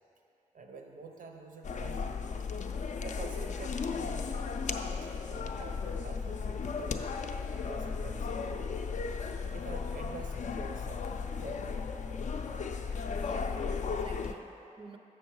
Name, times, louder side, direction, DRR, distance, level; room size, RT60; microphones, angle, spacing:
voice 1, 0.5-2.2 3.0-4.7 5.3-7.0 7.6-8.4 9.5-11.1 11.4-11.9 12.9-13.3 13.8-14.0, right 4 dB, 80° right, 2 dB, 0.8 m, -47 dB
sound 1, 1.6-14.3, left 5 dB, 65° left, 0.4 m, -35 dB
voice 2, 13.1-15.0, right 3 dB, 40° right, 5 dB, 0.5 m, -51 dB
7.2 x 6.2 x 4.6 m, 2.8 s
wide cardioid pair, 115°, 14 cm